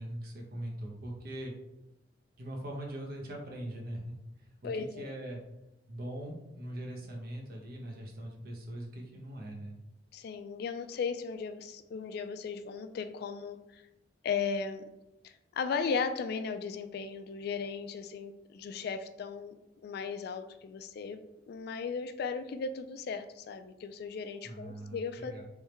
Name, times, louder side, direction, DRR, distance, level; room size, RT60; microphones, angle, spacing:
voice 1, 0.0-1.5 2.4-4.1 4.6-5.4 5.9-9.8 24.4-25.4, right 1 dB, 55° right, 0 dB, 0.9 m, -41 dB
voice 2, 4.6-5.1 10.1-13.8 14.2-14.8 15.2-19.5 19.8-21.2 21.5-25.3, left 5 dB, 60° left, 9 dB, 0.3 m, -36 dB
3.5 x 3.1 x 3.1 m, 0.92 s
head